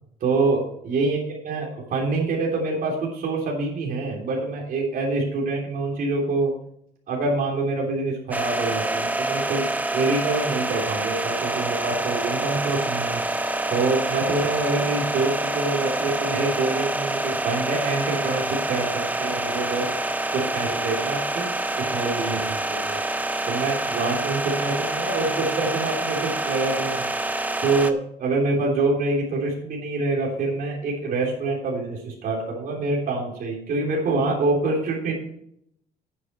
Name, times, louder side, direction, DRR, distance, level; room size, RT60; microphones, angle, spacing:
voice 1, 0.2-6.5 7.1-13.2 13.7-19.9 20.3-23.0 23.5-27.0 27.6-35.1, right 3 dB, 55° right, -2 dB, 3.2 m, -26 dB
sound 1, 8.3-27.9, right 2 dB, 10° right, 0.8 m, -27 dB
9.4 x 8.6 x 4.5 m, 0.73 s
cardioid pair, 110°, 17 cm